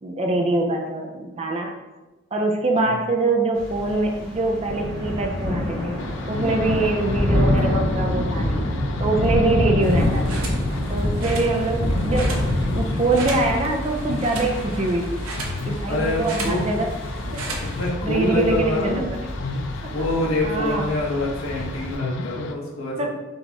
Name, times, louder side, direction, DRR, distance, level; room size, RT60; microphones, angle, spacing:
voice 1, 0.0-1.7 2.3-6.0 6.3-8.6 9.0-10.4 10.9-12.3 12.7-15.2 15.7-16.9 17.3-17.4 18.0-19.0 20.4-20.9 23.0-23.1, right 2 dB, 30° right, 1 dB, 0.4 m, -24 dB
Thunder / Rain, 3.6-22.0, left 1 dB, 5° left, 1.3 m, -26 dB
sound 1, 6.0-22.5, left 4 dB, 60° left, 0.3 m, -34 dB
sound 2, 9.8-17.9, right 2 dB, 90° right, 0.8 m, -36 dB
voice 2, 15.9-16.6 17.6-19.1 19.9-23.1, left 1 dB, 80° left, -4 dB, 1.1 m, -26 dB
4.0 x 3.0 x 3.5 m, 1.1 s
head